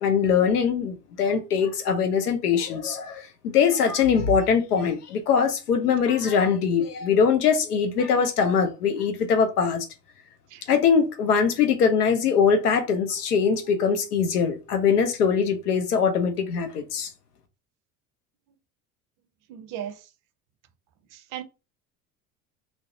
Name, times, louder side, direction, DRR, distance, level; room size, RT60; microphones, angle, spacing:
voice 1, 0.0-9.9 10.7-17.1, left 6 dB, 85° left, 0.6 m, -22 dB
voice 2, 19.5-19.9 21.3-21.4, right 10 dB, 45° right, 0.5 m, -34 dB
2.5 x 2.0 x 2.5 m
hypercardioid pair, 65°, 45 cm